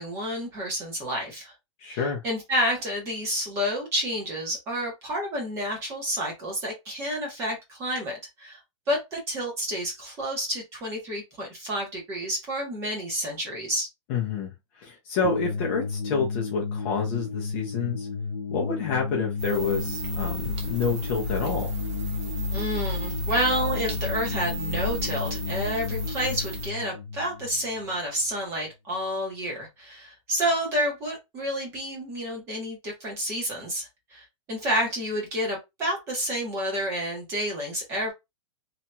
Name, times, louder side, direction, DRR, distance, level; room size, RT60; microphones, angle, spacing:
voice 1, 0.0-1.5 1.9-8.6 8.9-13.9 22.5-38.1, equal, 15° right, 1.0 m, -29 dB
voice 2, 1.8-2.2 14.1-18.1 18.5-21.7, left 5 dB, 25° left, 0.6 m, -28 dB
sound 1, 15.2-28.4, left 5 dB, 90° left, 0.6 m, -33 dB
sound 2, 19.4-26.7, equal, 60° right, 1.0 m, -33 dB
2.8 x 2.7 x 2.2 m
supercardioid pair, 180°, 16 cm